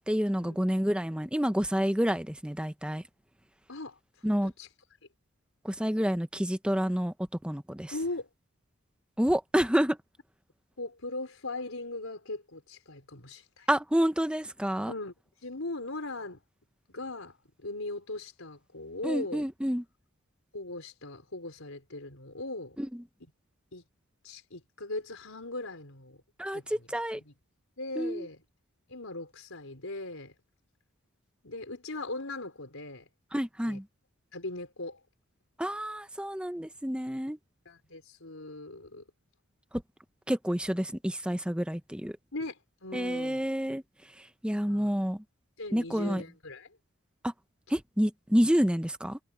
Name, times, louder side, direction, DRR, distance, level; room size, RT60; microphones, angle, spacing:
voice 1, 0.1-3.0 4.2-4.5 5.6-7.1 7.4-7.9 9.2-10.0 13.7-14.9 19.0-19.8 22.8-22.9 26.4-27.2 28.0-28.3 33.3-33.8 35.6-37.4 40.3-42.1 42.9-43.8 44.4-45.2 45.7-46.2 47.2-47.3 47.7-49.2, equal, 5° right, 0.9 m, -28 dB
voice 2, 7.9-8.3 10.8-13.7 14.9-15.1 15.4-16.4 16.9-17.4 17.6-19.4 20.5-22.8 23.7-23.8 24.2-26.2 26.5-26.8 27.1-27.3 27.8-28.4 28.9-30.3 31.4-33.1 33.6-33.8 34.3-35.0 37.6-39.0 42.3-43.5 44.6-44.9 45.6-46.8, left 2 dB, 75° left, 4.3 m, -39 dB
head